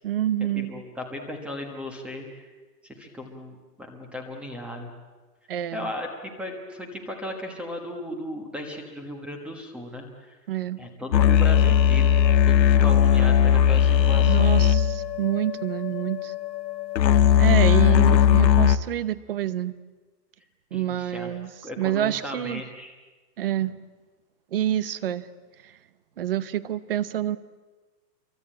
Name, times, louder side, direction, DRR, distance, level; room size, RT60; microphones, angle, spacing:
voice 1, 0.0-0.8 5.5-5.9 10.5-10.8 14.3-16.3 17.4-19.8 20.7-21.5 21.8-22.6 23.4-23.8 24.5-25.3 25.6-25.7 26.2-27.4, right 11 dB, 35° right, 16 dB, 0.9 m, -27 dB
voice 2, 0.5-2.5 2.8-4.9 5.7-10.4 10.8-12.1 12.5-14.7 20.7-21.3 21.6-22.9, left 1 dB, ahead, 3 dB, 1.2 m, -36 dB
sound 1, 11.1-18.8, left 8 dB, 85° left, 1.5 m, -19 dB
28.5 x 23.5 x 8.7 m, 1.3 s
hypercardioid pair, 175°, 50 cm